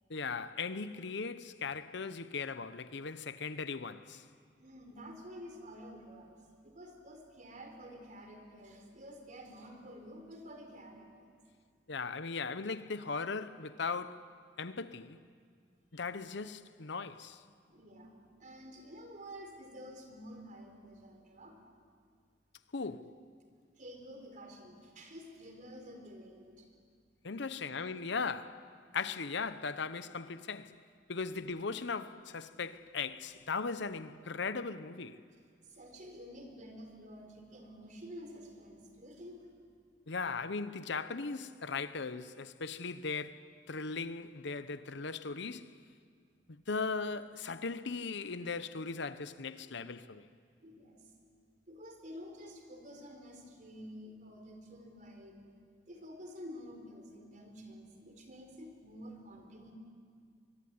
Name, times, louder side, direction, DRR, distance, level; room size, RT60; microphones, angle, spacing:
voice 1, 0.1-4.2 11.9-14.2 14.6-15.2 15.9-17.4 22.7-23.1 27.2-28.6 28.9-30.7 31.1-35.2 40.1-45.7 46.7-50.3, left 4 dB, 65° left, 0.9 m, -38 dB
voice 2, 4.6-6.4 6.6-11.3 17.7-21.6 23.8-26.7 27.5-27.6 35.6-39.5 50.6-51.0 51.7-55.5 55.9-59.7, equal, 45° right, 4.3 m, -50 dB
24.0 x 23.0 x 9.6 m
head